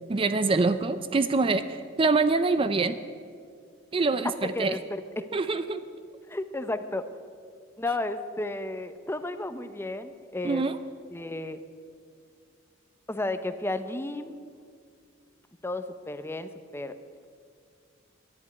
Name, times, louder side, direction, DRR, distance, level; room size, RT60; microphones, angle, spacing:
voice 1, 0.1-3.0 3.9-4.8 5.3-5.8 10.4-10.8, right 3 dB, 25° right, 12 dB, 0.4 m, -25 dB
voice 2, 6.3-7.0 7.8-10.7 11.1-11.6 13.1-14.4 15.6-16.9, left 2 dB, 10° left, 10 dB, 0.6 m, -33 dB
10.5 x 10.5 x 9.4 m, 2.1 s
head